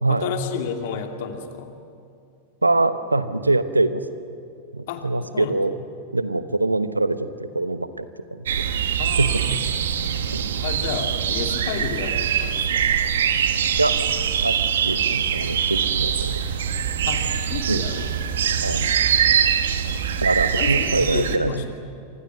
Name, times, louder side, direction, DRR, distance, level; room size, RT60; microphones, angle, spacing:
voice 1, 0.1-1.8 4.9-5.5 9.0-9.6 10.6-13.0 17.1-18.1 20.6-21.7, left 7 dB, 50° left, 5 dB, 2.4 m, -31 dB
voice 2, 2.6-4.2 4.7-5.7 6.1-8.5 9.2-9.6 10.0-10.5 13.8-13.9 14.4-14.6 14.8-16.4 17.7-17.8 18.6-18.9 20.2-21.6, right 2 dB, 80° right, 12 dB, 1.1 m, -24 dB
sound 1, 8.5-21.4, right 8 dB, 65° right, 1.6 m, -23 dB
29.5 x 25.0 x 6.1 m, 2.4 s
figure-of-eight pair, 90°, 0 cm